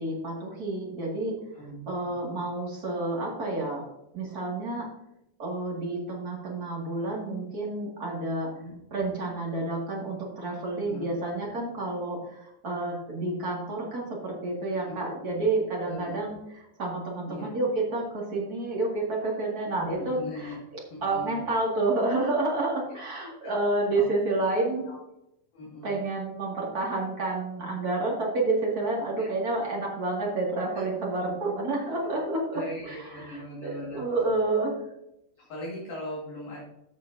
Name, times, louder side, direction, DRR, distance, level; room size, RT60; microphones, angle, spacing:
voice 1, 0.0-1.4 1.8-3.8 4.1-4.9 5.4-8.5 8.9-16.4 16.8-20.6 21.0-24.9 25.8-34.8, right 2 dB, 50° right, -3 dB, 1.0 m, -29 dB
voice 2, 1.5-2.2 8.5-8.7 10.9-11.1 14.7-15.0 15.8-16.1 17.3-17.5 19.8-20.6 20.9-21.4 22.8-23.0 23.4-23.5 23.9-24.1 24.9-25.0 25.5-25.9 29.0-29.3 30.7-30.8 32.1-32.2 32.5-34.0 35.4-36.6, left 1 dB, 55° left, -6 dB, 3.4 m, -40 dB
13.5 x 6.8 x 2.7 m, 0.83 s
omnidirectional pair, 5.4 m